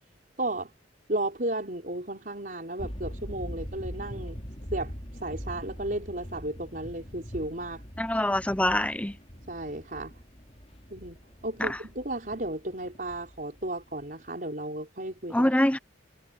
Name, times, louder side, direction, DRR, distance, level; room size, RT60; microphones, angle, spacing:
voice 1, 0.4-0.7 1.1-4.4 4.7-7.8 9.5-10.1 10.9-11.2 11.4-15.5, right 1 dB, 45° right, 5.4 m, -34 dB
sound 1, 2.8-14.3, equal, 35° left, 6.0 m, -42 dB
voice 2, 8.0-9.2 11.6-11.8 15.3-15.8, left 1 dB, 5° left, 0.7 m, -25 dB
head